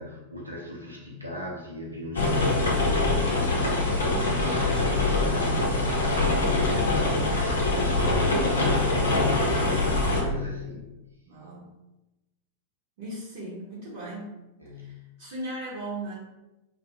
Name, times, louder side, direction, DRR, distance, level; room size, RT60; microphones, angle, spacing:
voice 1, 0.0-10.9 14.6-15.0, equal, 85° right, -3 dB, 0.7 m, -38 dB
sound 1, 2.2-10.2, left 2 dB, 70° left, 0.6 m, -24 dB
voice 2, 11.2-11.7 13.0-14.3 14.7-16.1, right 1 dB, 55° right, -7 dB, 0.8 m, -37 dB
2.8 x 2.2 x 2.8 m, 0.99 s
figure-of-eight pair, 90°, 0 cm